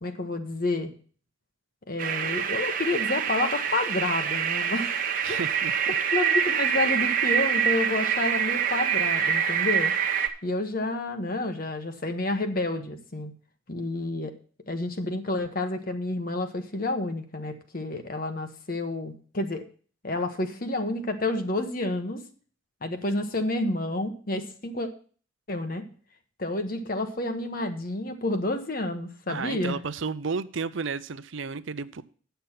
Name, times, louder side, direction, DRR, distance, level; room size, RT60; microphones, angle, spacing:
voice 1, 0.0-0.9 1.9-5.0 5.3-5.4 5.9-9.9 10.4-13.3 13.7-14.3 14.7-19.6 20.0-22.2 22.8-24.9 25.5-25.8 26.4-29.8, left 2 dB, 45° left, 7 dB, 1.1 m, -29 dB
sound 1, 2.0-10.3, right 8 dB, 40° right, 0.9 m, -26 dB
voice 2, 5.2-5.9 29.3-32.0, right 5 dB, 70° right, 15 dB, 0.6 m, -32 dB
9.5 x 6.8 x 5.8 m, 0.42 s
head